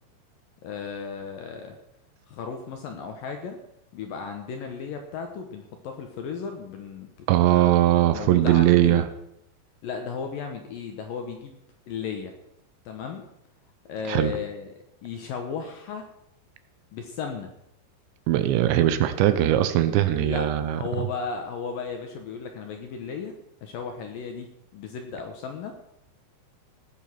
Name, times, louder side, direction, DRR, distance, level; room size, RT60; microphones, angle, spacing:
voice 1, 0.6-1.8 2.3-3.6 3.9-7.8 8.1-9.1 9.8-11.6 11.9-12.3 12.9-13.3 13.9-16.1 16.9-17.5 20.2-20.5 20.7-23.4 23.6-25.7, left 6 dB, 70° left, 4 dB, 2.3 m, -35 dB
voice 2, 7.3-9.1 14.1-14.3 18.3-20.8, right 13 dB, 80° right, 11 dB, 3.1 m, -20 dB
18.0 x 7.2 x 5.9 m, 0.78 s
omnidirectional pair, 5.2 m